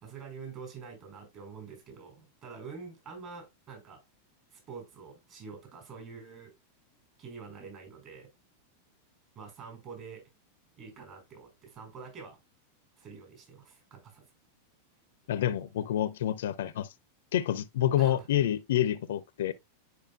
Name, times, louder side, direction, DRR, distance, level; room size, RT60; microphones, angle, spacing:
voice 1, 0.0-4.0 4.5-6.5 7.2-8.3 9.3-10.2 10.8-12.4 13.0-14.2 18.0-18.3, right 5 dB, 35° right, 4.1 m, -46 dB
voice 2, 15.3-16.9 17.3-19.5, left 11 dB, 60° left, 0.5 m, -28 dB
11.0 x 4.9 x 2.3 m
figure-of-eight pair, 90°, 0 cm